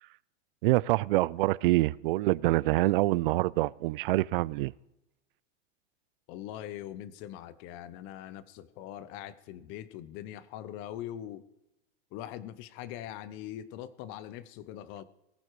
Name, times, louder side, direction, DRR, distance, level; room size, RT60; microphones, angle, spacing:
voice 1, 0.6-4.7, right 19 dB, 55° right, 0.5 m, -26 dB
voice 2, 6.3-11.4 12.1-15.0, left 11 dB, 35° left, 0.9 m, -42 dB
18.5 x 15.0 x 4.8 m
supercardioid pair, 160°, 32 cm